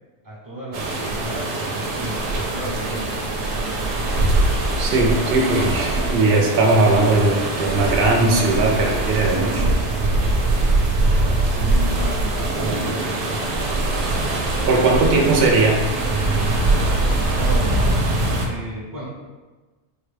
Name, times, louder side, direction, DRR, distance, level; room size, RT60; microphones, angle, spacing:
voice 1, 0.2-4.5 11.4-13.2 17.4-19.0, right 1 dB, 20° right, -4 dB, 0.7 m, -35 dB
sound 1, 0.7-18.5, right 2 dB, 85° right, 0.9 m, -22 dB
voice 2, 4.8-9.7 14.7-15.8, right 2 dB, 65° right, 1 dB, 0.8 m, -18 dB
4.1 x 2.2 x 3.2 m, 1.3 s
omnidirectional pair, 1.2 m